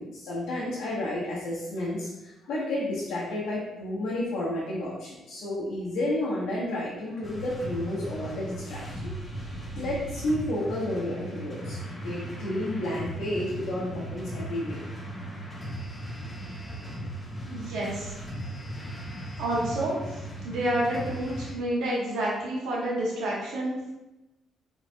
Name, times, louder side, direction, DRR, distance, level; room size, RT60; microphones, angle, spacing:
voice 1, 0.0-9.1 9.7-14.8, left 1 dB, 85° left, -7 dB, 1.0 m, -31 dB
sound 1, 7.2-21.5, right 1 dB, 30° left, 1.4 m, -37 dB
voice 2, 17.4-18.1 19.4-23.9, right 1 dB, 80° right, -6 dB, 1.2 m, -29 dB
4.4 x 3.8 x 2.3 m, 0.97 s
cardioid pair, 90°, 0 cm